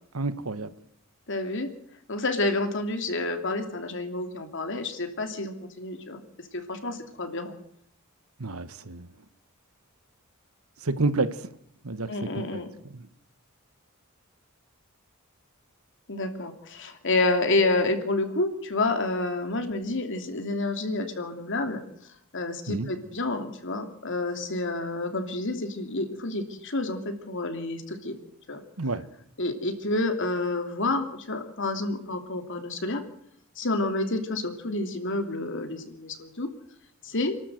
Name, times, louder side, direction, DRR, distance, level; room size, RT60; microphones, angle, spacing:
voice 1, 0.1-0.7 8.4-9.1 10.8-11.5 11.8-13.1 22.7-22.9 28.8-29.1, right 3 dB, 80° right, 1.3 m, -30 dB
voice 2, 1.3-1.7 2.1-6.2 6.5-7.6 12.1-12.7 16.1-21.8 22.3-28.1 28.5-28.6 29.4-33.0 33.6-36.5 37.0-37.3, left 2 dB, 60° left, 2.8 m, -29 dB
28.5 x 12.5 x 8.0 m
head